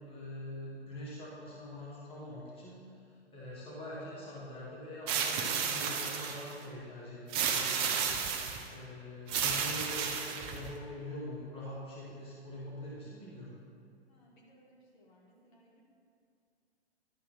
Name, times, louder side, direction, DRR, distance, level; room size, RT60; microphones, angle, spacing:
voice 1, 0.1-2.9 3.3-8.3 8.7-13.6, left 1 dB, 15° left, -6 dB, 1.9 m, -44 dB
sound 1, 5.1-6.5 7.3-8.7 9.3-10.7, right 6 dB, 20° right, 0.4 m, -32 dB
voice 2, 14.1-15.8, right 1 dB, 45° left, -3 dB, 1.9 m, -63 dB
11.5 x 4.2 x 5.6 m, 2.5 s
hypercardioid pair, 130°, 34 cm